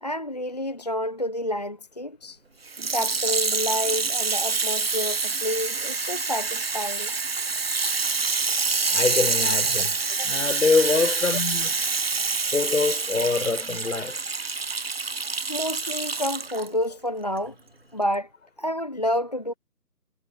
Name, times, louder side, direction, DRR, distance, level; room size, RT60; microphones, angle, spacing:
voice 1, 0.0-2.4 2.9-7.1 10.2-10.3 15.5-17.5 17.9-18.3 18.6-19.5, left 1 dB, 25° left, 0.8 m, -29 dB
Water tap faucet / Sink (filling or washing), 2.7-16.7 17.4-17.5, right 4 dB, 35° right, 1.0 m, -26 dB
voice 2, 8.9-10.0 10.2-11.8 12.5-14.2, left 4 dB, 55° left, 6.5 m, -24 dB
figure-of-eight pair, 155°, 49 cm